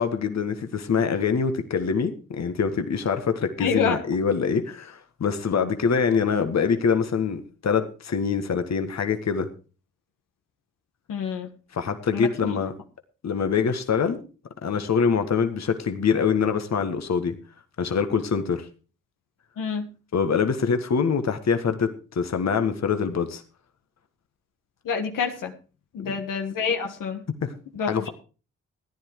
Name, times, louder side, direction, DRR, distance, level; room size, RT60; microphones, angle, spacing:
voice 1, 0.0-9.5 11.7-12.7 13.2-14.2 14.6-17.3 17.8-18.7 20.1-23.4 26.0-26.1 27.4-27.5 27.9-28.1, left 6 dB, 55° left, 8 dB, 1.7 m, -24 dB
voice 2, 3.6-4.0 11.1-11.5 12.1-12.5 19.6-19.9 24.8-25.5 25.9-27.2 27.7-28.1, left 6 dB, 80° left, 4 dB, 1.6 m, -27 dB
14.0 x 10.0 x 4.7 m, 0.35 s
cardioid pair, 60°, 32 cm